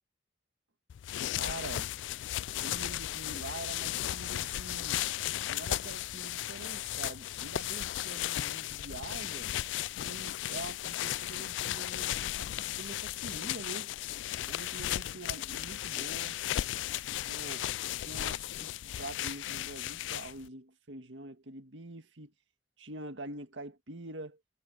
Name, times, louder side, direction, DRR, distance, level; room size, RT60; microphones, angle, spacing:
sound 1, 0.9-20.5, left 13 dB, 80° left, 0.3 m, -35 dB
voice 1, 1.3-2.1 2.6-5.0 5.5-9.5 10.0-13.9 14.5-16.4 17.2-22.3 22.8-24.4, right 2 dB, 80° right, 1.9 m, -45 dB
head